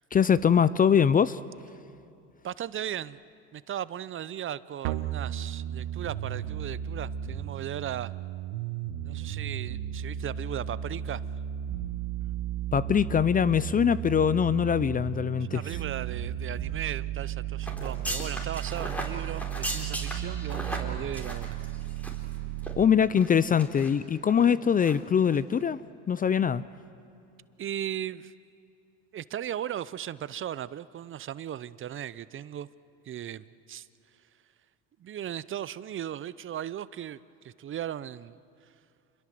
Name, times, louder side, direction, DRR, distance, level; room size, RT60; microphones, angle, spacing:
voice 1, 0.1-1.4 12.7-15.6 22.8-25.8 26.1-26.6, left 7 dB, 25° left, 18 dB, 0.5 m, -23 dB
voice 2, 2.4-3.2 3.5-8.1 9.0-11.2 15.5-21.6 27.6-28.3 29.1-32.7 33.1-33.9 35.0-37.2 37.4-38.4, right 10 dB, 35° right, 18 dB, 0.6 m, -37 dB
sound 1, 4.8-22.8, right 10 dB, 80° right, 1.3 m, -34 dB
sound 2, 17.6-22.3 22.6-22.7 23.2-23.9 24.3-24.5 24.8-25.0 25.3-25.4, equal, 5° left, 3.9 m, -37 dB
28.0 x 21.5 x 7.7 m, 2.6 s
supercardioid pair, 100°, 35 cm